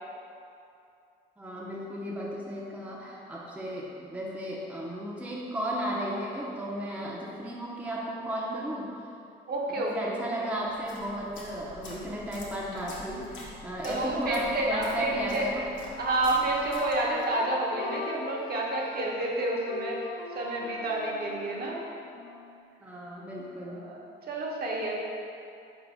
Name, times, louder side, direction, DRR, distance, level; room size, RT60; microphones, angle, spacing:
voice 1, 1.4-9.2 9.7-15.7 22.8-23.9, equal, 5° right, -4 dB, 0.5 m, -35 dB
voice 2, 9.5-10.5 13.8-15.5 16.0-20.1 20.3-21.8 23.6-25.0, right 2 dB, 50° right, -3 dB, 0.8 m, -29 dB
sound 1, 10.7-17.4, left 2 dB, 80° left, 0.9 m, -47 dB
Wind instrument woodwind instrument, 15.8-22.7, left 4 dB, 65° left, 0.5 m, -43 dB
4.0 x 2.6 x 4.6 m, 2.6 s
cardioid pair, 90°, 20 cm